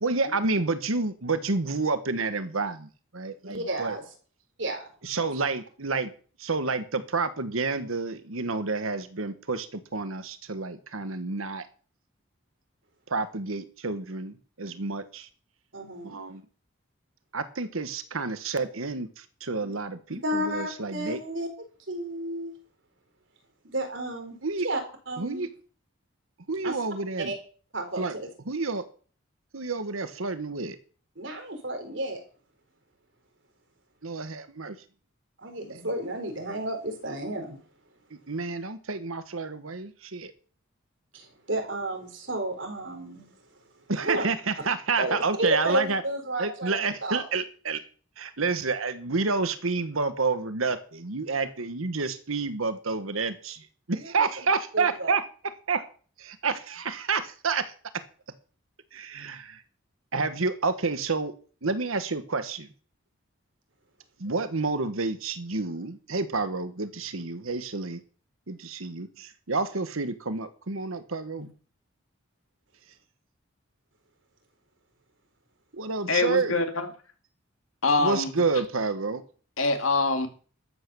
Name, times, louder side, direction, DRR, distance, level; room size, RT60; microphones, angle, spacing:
voice 1, 0.0-4.0 5.0-6.1 6.4-11.7 13.1-15.3 16.0-16.4 17.3-21.2 24.4-24.7 25.2-25.5 26.5-27.3 28.0-28.1 28.5-28.8 29.5-30.8 34.0-34.8 35.7-35.9 38.3-40.3 43.9-46.0 46.4-47.8 48.2-55.2 55.7-55.8 56.2-57.6 58.9-59.6 60.1-61.3 61.6-62.7 64.2-68.0 68.5-71.5 75.7-76.5 78.0-79.2, right 4 dB, 85° right, 11 dB, 1.3 m, -29 dB
voice 2, 3.4-4.0 4.6-4.9 15.7-16.2 19.6-19.7 20.2-21.5 21.9-22.5 23.7-24.4 24.6-24.8 25.1-25.5 26.6-26.8 27.3-27.4 27.7-28.3 31.2-32.2 35.4-37.6 41.1-43.3 44.0-44.2 45.0-47.2 53.9-54.3 54.7-55.1 55.7-55.8, right 1 dB, 65° right, 5 dB, 4.2 m, -32 dB
voice 3, 76.1-76.9 77.8-78.3 79.6-80.3, left 3 dB, 80° left, 6 dB, 2.4 m, -24 dB
13.0 x 8.4 x 6.9 m, 0.41 s
head